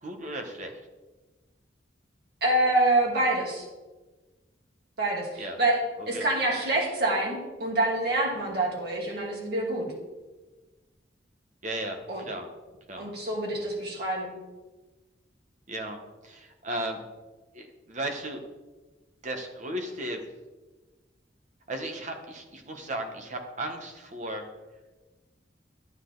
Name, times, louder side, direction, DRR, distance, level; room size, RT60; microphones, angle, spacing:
voice 1, 0.0-0.7 5.4-5.6 6.0-6.2 11.6-12.5 12.9-13.1 15.7-17.0 17.5-18.4 19.2-20.2 21.7-24.4, right 1 dB, 40° right, 5 dB, 1.4 m, -35 dB
voice 2, 2.4-3.6 5.0-5.8 6.1-9.8 12.1-12.2 13.0-14.3, right 2 dB, 60° right, -3 dB, 3.1 m, -26 dB
12.5 x 9.1 x 4.0 m, 1.2 s
head